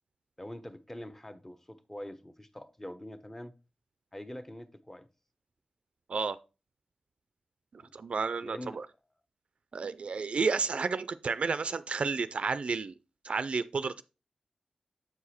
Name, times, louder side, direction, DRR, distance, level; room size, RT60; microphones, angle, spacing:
voice 1, 0.4-3.5 4.1-5.1 7.8-7.9 8.4-8.8, left 1 dB, 15° left, 0.8 m, -44 dB
voice 2, 7.7-8.9 9.7-12.9 13.2-14.0, right 4 dB, 65° right, 0.3 m, -31 dB
7.8 x 4.8 x 4.2 m
wide cardioid pair, 70°, 2 cm